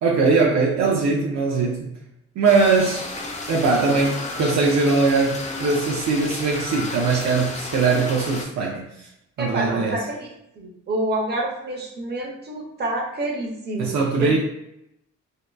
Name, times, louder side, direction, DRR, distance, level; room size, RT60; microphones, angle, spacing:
voice 1, 0.0-1.9 2.4-3.1 3.5-9.1 9.4-10.0 13.8-14.4, right 4 dB, 65° right, -2 dB, 0.5 m, -21 dB
sound 1, 2.4-8.4, left 2 dB, 25° left, 0.4 m, -33 dB
voice 2, 9.4-10.3 10.6-13.9 14.2-14.3, right 1 dB, 35° right, -1 dB, 0.8 m, -27 dB
2.7 x 2.2 x 2.2 m, 0.79 s
cardioid pair, 90°, 30 cm